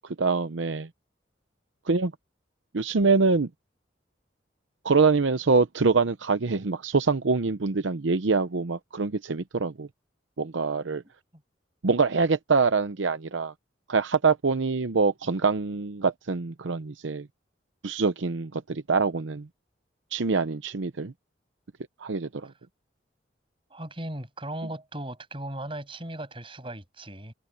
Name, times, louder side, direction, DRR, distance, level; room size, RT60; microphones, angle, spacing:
voice 1, 0.2-0.9 1.9-2.1 2.7-3.5 4.8-9.9 10.4-11.0 11.8-13.5 13.9-17.3 17.8-19.5 20.1-21.1 22.0-22.5, right 4 dB, 85° right, 0.8 m, -24 dB
voice 2, 23.7-27.3, right 1 dB, 30° right, 7.9 m, -37 dB
head